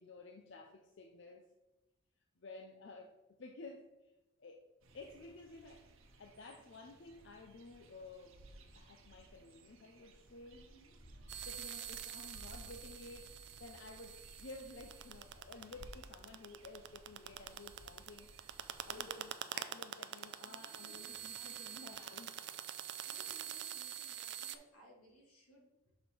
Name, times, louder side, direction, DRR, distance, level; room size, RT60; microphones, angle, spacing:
voice 1, 0.0-1.5 2.4-3.1 3.4-4.1 4.4-4.7 4.9-5.9 6.2-8.4 8.8-10.6 11.4-18.3 18.8-22.3, left 3 dB, 55° left, 3 dB, 0.5 m, -53 dB
sound 1, 4.8-19.1, right 1 dB, 65° right, 0.9 m, -58 dB
voice 2, 10.5-10.9 18.8-19.2 20.4-22.2 23.0-25.9, equal, 85° left, -3 dB, 2.3 m, -61 dB
sound 2, 11.3-24.6, right 9 dB, 50° right, 0.4 m, -46 dB
6.4 x 4.3 x 4.5 m, 0.99 s
head